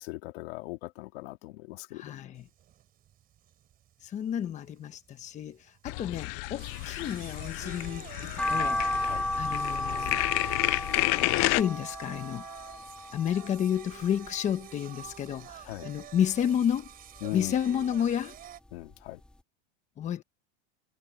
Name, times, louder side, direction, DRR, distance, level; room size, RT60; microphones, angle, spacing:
voice 1, 0.0-2.3 9.1-9.2 15.7-15.9 17.2-17.5 18.7-19.2, left 20 dB, 70° left, 2.2 m, -39 dB
voice 2, 1.9-2.4 4.0-8.8 9.4-10.2 11.3-12.4 13.1-16.9 17.3-18.4 20.0-20.2, left 9 dB, 20° left, 1.2 m, -31 dB
Singing, 2.4-18.6, right 11 dB, 30° right, 3.7 m, -48 dB
sound 1, 5.9-11.6, left 24 dB, 40° left, 0.4 m, -30 dB
sound 2, 8.4-14.7 15.1-16.2 16.6-18.0 18.3-18.4 18.9-19.0 19.3-19.4, left 1 dB, 5° left, 2.1 m, -34 dB
supercardioid pair, 165°, 32 cm